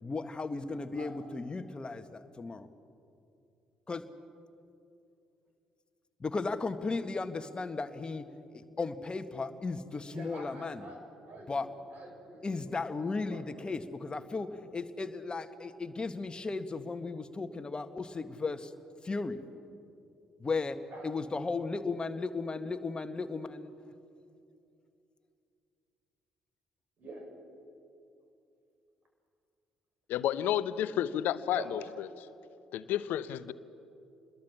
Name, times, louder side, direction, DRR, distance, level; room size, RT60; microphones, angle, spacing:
voice 1, 0.0-2.7 3.9-4.1 6.2-10.9 11.5-11.7 12.4-18.7 19.0-19.4 20.4-23.7, left 3 dB, 25° left, 9 dB, 1.7 m, -36 dB
voice 2, 10.1-11.0 11.2-12.9 13.3-13.9 20.9-21.1 27.0-27.3 31.5-31.9, right 2 dB, 50° right, 3 dB, 6.2 m, -47 dB
voice 3, 30.1-31.8 32.2-32.3 32.7-33.5, left 11 dB, 60° left, 16 dB, 0.8 m, -31 dB
27.5 x 21.5 x 7.5 m, 2.7 s
figure-of-eight pair, 45°, 4 cm